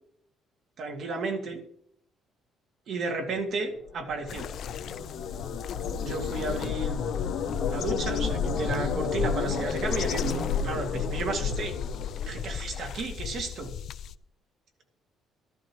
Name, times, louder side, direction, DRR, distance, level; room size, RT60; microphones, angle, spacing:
voice 1, 0.8-1.6 2.9-4.5 6.0-7.0 7.6-11.8 12.2-13.7, right 3 dB, 50° right, 3 dB, 2.1 m, -33 dB
sound 1, 3.9-13.1, left 6 dB, 80° left, 1.8 m, -31 dB
sound 2, 4.3-14.1, left 9 dB, 50° left, 0.4 m, -38 dB
13.5 x 13.0 x 3.0 m, 0.66 s
cardioid pair, 160°, 0 cm